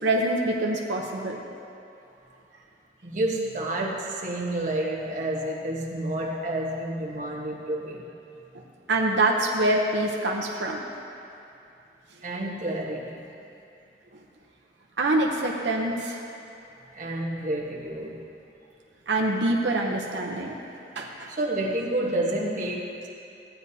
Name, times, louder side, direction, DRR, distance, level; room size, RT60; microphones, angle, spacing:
voice 1, 0.0-1.4 8.9-10.8 15.0-16.2 19.1-20.5 21.0-21.3, right 2 dB, 90° right, -1 dB, 0.8 m, -25 dB
voice 2, 3.0-8.1 12.2-13.2 16.9-18.2 21.3-23.1, right 1 dB, 45° right, -4 dB, 1.3 m, -29 dB
15.5 x 9.6 x 2.8 m, 2.7 s
head